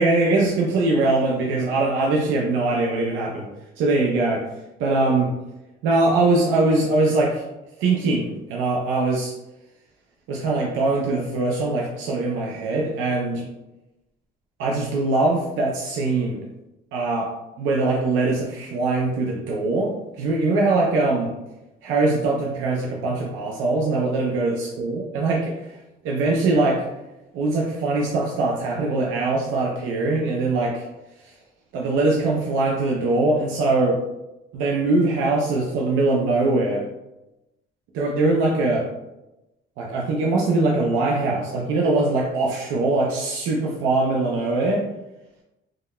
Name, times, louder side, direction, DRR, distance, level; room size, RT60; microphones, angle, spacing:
voice 1, 0.0-3.5 3.8-4.5 4.8-5.3 5.8-7.5 7.8-9.3 10.3-13.5 14.6-16.4 16.9-17.3 17.6-21.3 21.8-26.9 27.3-30.9 31.2-31.3 31.7-34.0 34.5-36.8 37.9-38.9 39.8-44.9, right 2 dB, 90° right, -2 dB, 0.5 m, -22 dB
3.6 x 2.1 x 2.3 m, 0.97 s
cardioid pair, 135°, 20 cm